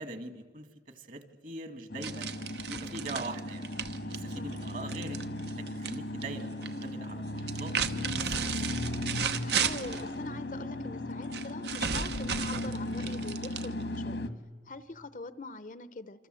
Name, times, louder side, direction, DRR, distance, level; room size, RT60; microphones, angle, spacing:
voice 1, 0.0-3.6 4.1-5.2 5.6-8.7, right 2 dB, 50° right, 9 dB, 1.8 m, -42 dB
sound 1, 1.9-14.3, left 1 dB, 80° left, 1.5 m, -36 dB
sound 2, 2.0-6.0 6.2-6.8 7.4-10.1 11.3-14.0, right 7 dB, 70° right, 1.0 m, -34 dB
voice 2, 9.4-14.2 14.7-16.3, left 3 dB, 45° left, 14 dB, 0.7 m, -43 dB
26.5 x 26.0 x 7.7 m, 1.5 s
head